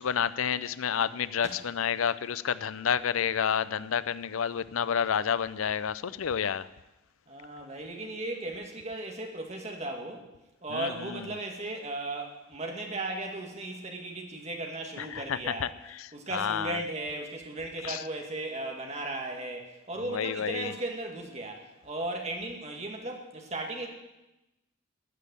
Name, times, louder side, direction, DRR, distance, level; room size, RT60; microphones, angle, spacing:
voice 1, 0.0-6.7 10.7-10.9 15.0-15.7 16.3-16.8 17.8-18.0 20.1-20.7, left 7 dB, 80° left, 17 dB, 0.5 m, -29 dB
voice 2, 7.3-10.2 10.6-15.7 16.1-23.9, right 2 dB, 30° right, 2 dB, 2.0 m, -36 dB
14.5 x 6.5 x 10.0 m, 0.99 s
head